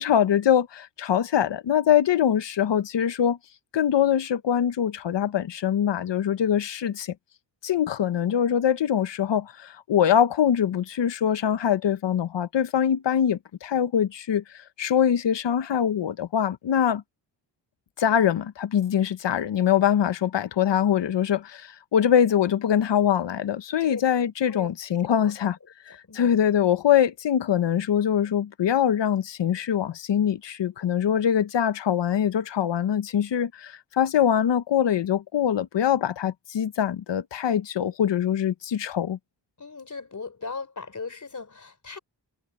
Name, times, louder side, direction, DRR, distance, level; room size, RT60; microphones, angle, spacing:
voice 1, 0.0-3.4 3.7-7.1 7.6-14.4 14.8-17.0 18.0-25.6 25.9-39.2, left 9 dB, 75° left, 1.0 m, -23 dB
voice 2, 39.6-42.0, left 4 dB, 40° left, 3.7 m, -37 dB
wide cardioid pair, 115°, 44 cm